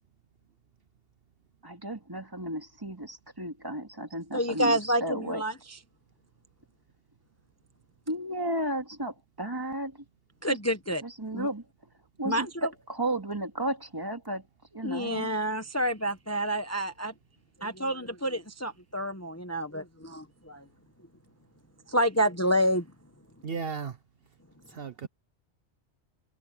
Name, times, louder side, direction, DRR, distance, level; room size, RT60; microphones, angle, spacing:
voice 1, 1.6-5.4 8.1-9.9 10.5-10.6 11.0-11.6 12.2-14.4 14.7-15.3, right 1 dB, 20° right, 2.4 m, -33 dB
voice 2, 4.3-5.8 10.4-11.0 11.3-11.5 12.2-12.7 14.8-17.1 17.6-20.6 21.9-22.8, equal, 15° left, 0.9 m, -28 dB
voice 3, 23.4-24.0 24.7-25.1, right 5 dB, 60° right, 1.0 m, -35 dB
omnidirectional pair, 1.1 m